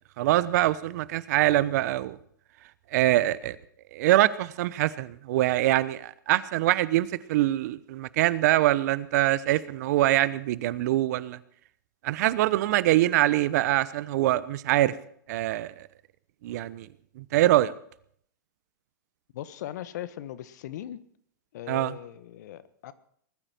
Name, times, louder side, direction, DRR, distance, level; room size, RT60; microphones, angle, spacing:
voice 1, 0.2-2.2 2.9-3.6 3.9-11.4 12.0-14.9 15.3-15.9 16.4-16.9 17.2-17.7 21.7-21.9, right 15 dB, 55° right, 1.0 m, -24 dB
voice 2, 19.3-21.0 21.5-22.9, left 12 dB, 60° left, 1.3 m, -39 dB
20.0 x 13.5 x 4.5 m
hypercardioid pair, 115°, 10 cm